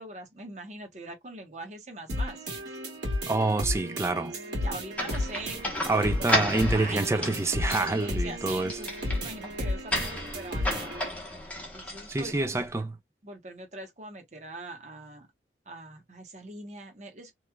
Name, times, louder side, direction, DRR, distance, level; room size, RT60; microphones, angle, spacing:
voice 1, 0.0-2.5 4.5-7.4 7.8-11.0 11.7-12.9 13.2-15.3 15.7-17.3, right 2 dB, 40° right, 0.9 m, -42 dB
sound 1, 2.1-11.1, left 1 dB, 75° right, 1.6 m, -33 dB
voice 2, 3.3-4.3 5.9-8.8 12.1-12.9, right 2 dB, 15° right, 0.4 m, -27 dB
sound 2, 4.9-12.6, left 1 dB, 10° left, 0.9 m, -34 dB
3.0 x 2.3 x 2.2 m
head